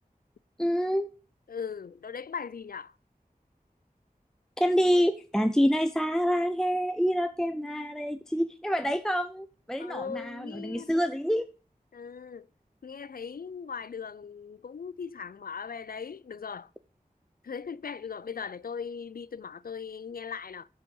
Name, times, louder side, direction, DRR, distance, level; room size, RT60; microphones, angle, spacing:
voice 1, 0.6-1.1 4.6-11.5, equal, 5° left, 0.4 m, -27 dB
voice 2, 1.5-2.9 9.8-11.1 11.9-12.5 12.8-16.7 17.4-20.7, left 6 dB, 70° left, 0.4 m, -39 dB
6.7 x 5.6 x 5.3 m
wide cardioid pair, 50°, 15 cm